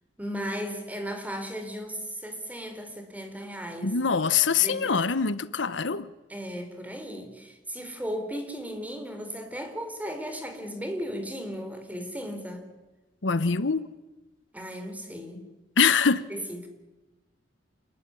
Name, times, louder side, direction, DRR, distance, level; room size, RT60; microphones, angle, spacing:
voice 1, 0.2-4.0 4.6-4.9 6.3-12.7 14.5-15.5 16.3-16.7, equal, 10° right, 4.2 m, -36 dB
voice 2, 3.8-6.1 13.2-13.9 15.8-16.3, left 5 dB, 90° left, 1.0 m, -24 dB
28.0 x 21.0 x 10.0 m
head